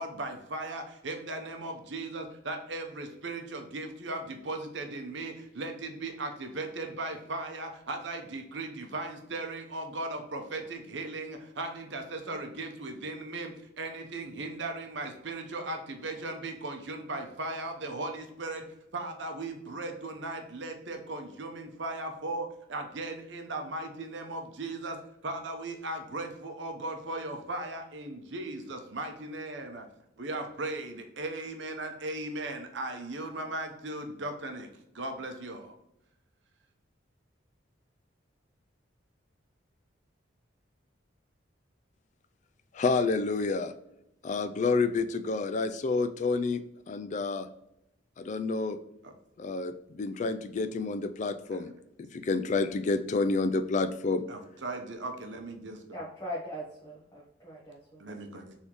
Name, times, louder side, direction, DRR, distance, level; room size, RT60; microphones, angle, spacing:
voice 1, 0.0-18.6 18.9-25.0 25.2-29.9 30.2-35.7 49.0-49.1 51.5-51.7 54.3-56.0 58.0-58.6, right 2 dB, 65° right, 4 dB, 0.8 m, -37 dB
voice 2, 42.8-43.7 44.2-46.6 46.9-47.5 48.2-48.8 49.4-51.7 52.2-54.2, left 3 dB, 40° left, 11 dB, 0.3 m, -29 dB
voice 3, 55.9-58.0, equal, 20° left, -8 dB, 1.1 m, -40 dB
4.2 x 3.5 x 3.0 m, 0.85 s
head